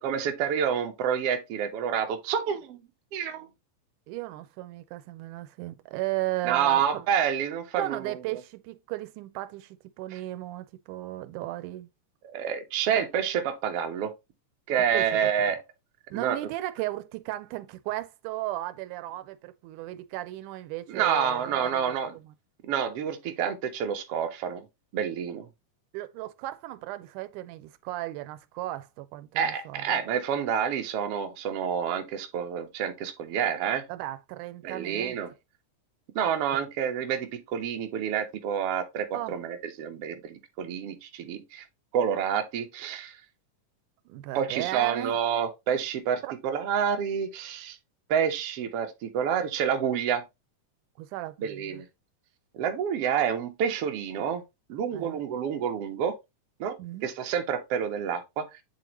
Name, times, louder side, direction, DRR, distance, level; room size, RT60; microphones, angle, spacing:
voice 1, 0.0-2.8 3.1-3.5 6.4-8.1 12.2-14.1 14.7-15.6 16.1-16.4 20.9-22.1 22.6-24.6 24.9-25.5 29.3-33.8 34.6-35.3 36.1-41.6 41.9-43.2 44.3-47.8 48.1-50.2 51.4-51.8 52.5-54.4 54.7-56.1 56.6-56.8 57.0-58.5, right 8 dB, 65° right, 1.6 m, -28 dB
voice 2, 4.1-7.0 7.8-11.9 14.9-15.2 16.1-22.3 25.9-30.0 33.9-35.2 36.5-36.6 39.1-39.4 44.1-45.2 46.2-46.3 51.0-51.8 54.9-55.2 56.8-57.1, right 16 dB, 90° right, 2.1 m, -35 dB
8.7 x 3.8 x 2.9 m
omnidirectional pair, 3.5 m